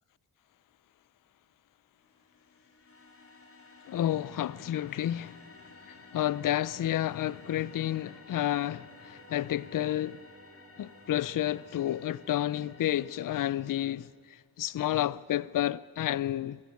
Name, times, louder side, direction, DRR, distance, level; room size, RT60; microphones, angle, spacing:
sound 1, 2.0-13.8, left 3 dB, 35° left, 3.4 m, -55 dB
voice 1, 3.9-5.4 5.9-10.2 10.8-16.6, left 12 dB, 60° left, 0.5 m, -30 dB
Singing, 4.2-14.0, equal, 50° right, 6.4 m, -59 dB
21.5 x 15.5 x 9.6 m
cardioid pair, 65°, 37 cm